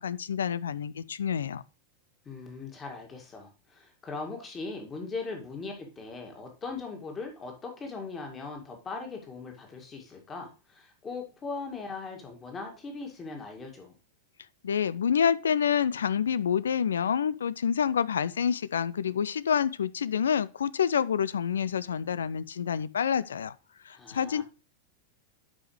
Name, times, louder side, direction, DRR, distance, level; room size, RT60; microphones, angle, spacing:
voice 1, 0.0-1.6 14.6-23.5 23.9-24.4, left 7 dB, 65° left, 0.3 m, -27 dB
voice 2, 2.3-13.9 23.9-24.4, left 4 dB, 20° left, 2.1 m, -39 dB
11.0 x 5.2 x 3.1 m
figure-of-eight pair, 90°, 0 cm